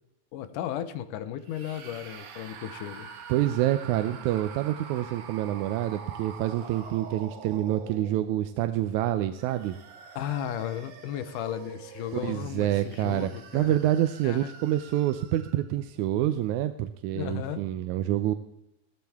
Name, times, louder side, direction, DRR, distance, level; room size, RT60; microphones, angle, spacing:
voice 1, 0.3-3.1 10.2-13.8 14.2-14.5 17.1-17.6, left 10 dB, 80° left, 11 dB, 2.3 m, -35 dB
sound 1, 1.4-8.5 9.2-15.7, right 6 dB, 60° right, 2.2 m, -46 dB
voice 2, 3.3-9.8 12.1-18.3, right 13 dB, 80° right, 9 dB, 1.9 m, -27 dB
15.0 x 13.5 x 3.5 m, 0.83 s
omnidirectional pair, 3.7 m